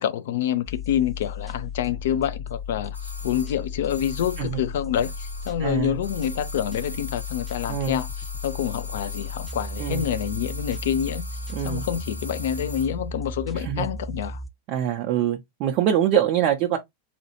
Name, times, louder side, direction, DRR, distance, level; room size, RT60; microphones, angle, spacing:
voice 1, 0.0-14.4, left 10 dB, 55° left, 0.5 m, -27 dB
sound 1, 0.7-14.5, left 3 dB, ahead, 0.6 m, -35 dB
sound 2, 2.9-5.7 6.0-13.0 13.2-13.3, left 1 dB, 90° left, 0.7 m, -41 dB
voice 2, 5.6-5.9 7.7-8.0 9.8-10.0 11.5-11.8 13.6-13.9 14.7-16.8, right 10 dB, 40° right, 0.5 m, -24 dB
4.2 x 2.3 x 3.0 m
figure-of-eight pair, 90°, 0 cm